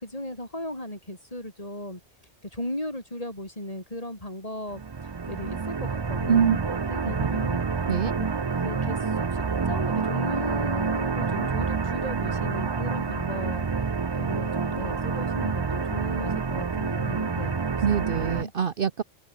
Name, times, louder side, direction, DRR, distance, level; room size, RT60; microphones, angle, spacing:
voice 1, 0.0-2.0 2.4-4.8 5.3-6.4 6.7-7.6 8.6-13.6 14.1-17.8 18.3-18.5, left 1 dB, 30° left, 5.8 m, -36 dB
sound 1, 4.7-18.4, right 5 dB, 30° right, 0.5 m, -28 dB
voice 2, 6.3-6.6 7.1-7.3 7.9-8.1 17.8-19.0, right 7 dB, 55° right, 1.0 m, -24 dB
omnidirectional pair, 1.2 m